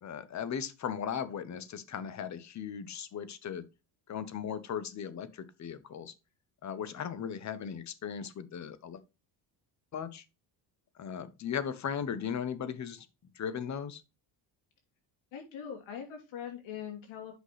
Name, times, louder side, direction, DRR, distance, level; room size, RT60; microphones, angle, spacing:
voice 1, 0.0-3.6 4.1-6.1 6.6-9.0 9.9-10.2 11.0-13.1 13.4-14.0, left 8 dB, 35° left, 0.9 m, -37 dB
voice 2, 15.3-17.3, left 8 dB, 85° left, 3.0 m, -42 dB
8.2 x 5.9 x 3.2 m
cardioid pair, 140°, 46 cm